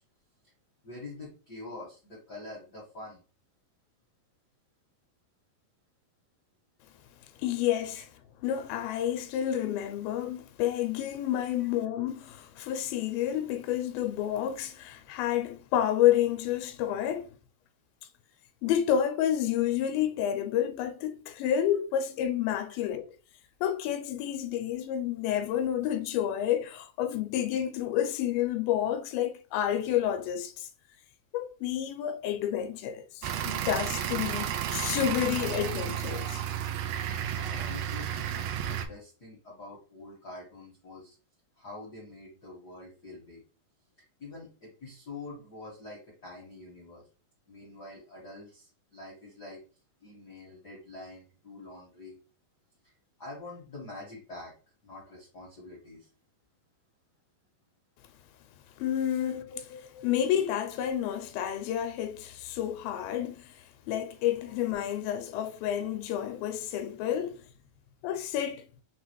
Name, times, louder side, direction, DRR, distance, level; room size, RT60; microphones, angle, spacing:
voice 1, 0.8-3.2 7.9-8.0 11.6-11.7 36.8-41.1 41.6-43.4 44.2-47.1 47.5-49.6 50.0-52.2 52.8-52.9 53.2-54.5 54.8-56.1 59.2-60.1, left 2 dB, 60° left, 1.0 m, -46 dB
voice 2, 7.4-8.0 8.4-17.3 18.6-23.1 23.6-30.7 31.3-36.5 58.8-67.4 68.0-68.7, left 10 dB, 85° left, 2.3 m, -30 dB
sound 1, 33.2-38.9, right 10 dB, 80° right, 2.1 m, -32 dB
5.8 x 2.4 x 3.0 m
omnidirectional pair, 4.2 m